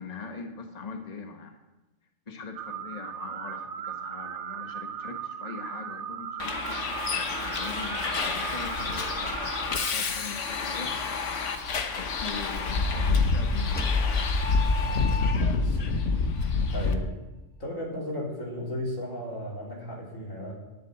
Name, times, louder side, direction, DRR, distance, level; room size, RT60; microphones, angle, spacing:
voice 1, 0.0-1.6 2.3-11.0 12.0-16.0, left 4 dB, 35° left, 4 dB, 1.3 m, -42 dB
sound 1, 2.6-9.9, right 9 dB, 70° right, 0.9 m, -37 dB
Bus, 6.4-16.9, left 4 dB, 70° left, 1.4 m, -28 dB
sound 2, 13.7-15.8, left 3 dB, 10° left, 0.8 m, -31 dB
voice 2, 16.7-17.1 17.6-20.5, left 1 dB, 85° left, -3 dB, 4.2 m, -34 dB
11.5 x 7.4 x 9.8 m, 1.0 s
omnidirectional pair, 1.3 m